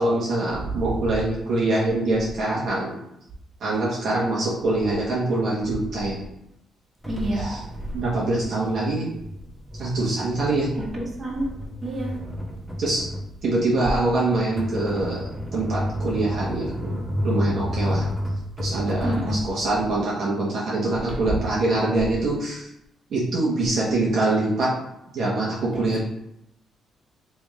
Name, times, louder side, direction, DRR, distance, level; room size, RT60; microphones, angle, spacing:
voice 1, 0.0-3.0 3.6-6.2 7.3-7.6 7.9-9.1 9.7-10.7 12.8-13.1 13.4-15.2 15.5-18.1 18.6-22.7 23.1-24.8 25.1-26.0, right 2 dB, 60° right, -6 dB, 1.0 m, -24 dB
sound 1, 7.0-19.4, equal, ahead, 1.0 m, -31 dB
voice 2, 7.1-7.5 10.9-11.5 11.8-12.2 19.0-19.4 25.7-26.0, right 1 dB, 35° right, -3 dB, 1.3 m, -28 dB
3.4 x 3.2 x 3.5 m, 0.81 s
cardioid pair, 90°, 0 cm